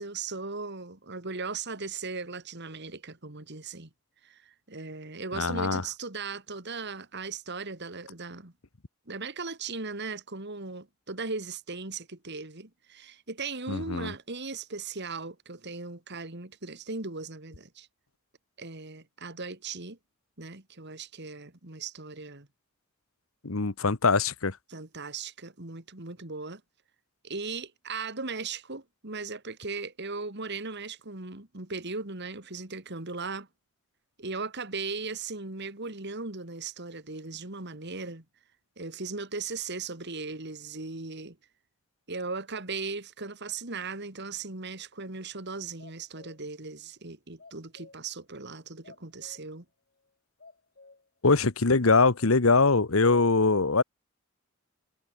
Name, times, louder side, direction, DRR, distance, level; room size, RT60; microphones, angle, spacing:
voice 1, 0.0-3.9 4.2-8.5 9.1-17.9 18.6-20.0 20.4-22.5 24.7-26.6 27.2-33.5 34.2-38.2 38.8-41.4 42.1-49.6, right 4 dB, 55° right, 2.9 m, -38 dB
voice 2, 5.3-5.8 13.7-14.1 23.4-24.6 51.2-53.8, left 3 dB, 90° left, 1.3 m, -23 dB
sound 1, 45.8-46.5 47.4-48.1 48.8-49.5 50.0-50.1 50.4-51.1 51.5-52.4, left 3 dB, 50° left, 4.5 m, -53 dB
head